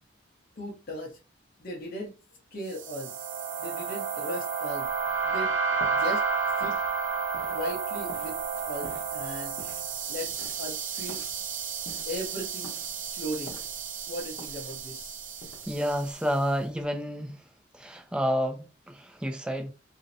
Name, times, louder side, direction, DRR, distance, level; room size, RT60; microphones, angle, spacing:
voice 1, 0.6-1.2 1.6-2.1 2.5-3.2 3.6-4.9 5.2-5.6 5.9-6.3 6.6-6.8 7.5-8.4 8.7-9.6 10.1-11.2 12.1-12.8 13.0-13.6 14.1-15.2, equal, 50° left, 0.8 m, -37 dB
sound 1, 2.7-16.1, right 6 dB, 70° right, 0.5 m, -32 dB
sound 2, 4.8-16.9, left 1 dB, 80° left, 0.8 m, -50 dB
voice 2, 15.7-17.5 17.7-19.7, equal, 5° right, 0.3 m, -30 dB
2.6 x 2.1 x 2.5 m
head